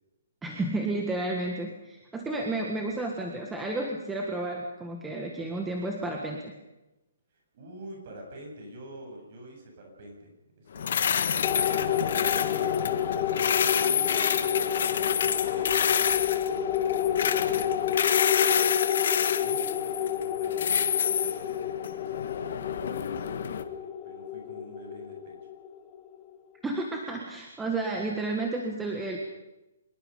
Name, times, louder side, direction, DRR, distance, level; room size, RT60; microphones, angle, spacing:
voice 1, 0.4-6.5 26.6-29.2, right 2 dB, 5° right, 0 dB, 1.6 m, -32 dB
voice 2, 7.3-10.3 10.6-13.0 13.7-18.7 19.4-25.4, right 1 dB, 35° right, 1 dB, 8.0 m, -47 dB
sound 1, 10.8-23.6, left 7 dB, 50° left, 1.7 m, -28 dB
sound 2, 11.4-26.2, left 10 dB, 15° left, 1.2 m, -30 dB
25.0 x 21.5 x 5.4 m, 1.0 s
hypercardioid pair, 175°, 0 cm